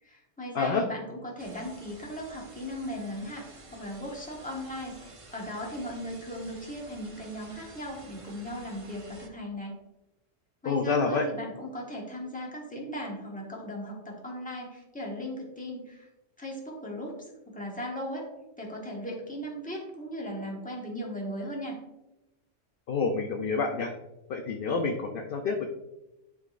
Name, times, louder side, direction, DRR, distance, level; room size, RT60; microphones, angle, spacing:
voice 1, 0.0-9.7 10.6-16.1 16.4-18.3 18.6-21.8, equal, 5° left, -2 dB, 1.2 m, -37 dB
sound 1, 1.4-9.3, right 3 dB, 35° right, 0.5 m, -51 dB
voice 2, 10.6-11.3 22.9-23.9 24.3-25.6, left 4 dB, 55° left, 3 dB, 0.7 m, -28 dB
11.0 x 3.8 x 2.5 m, 0.96 s
omnidirectional pair, 1.3 m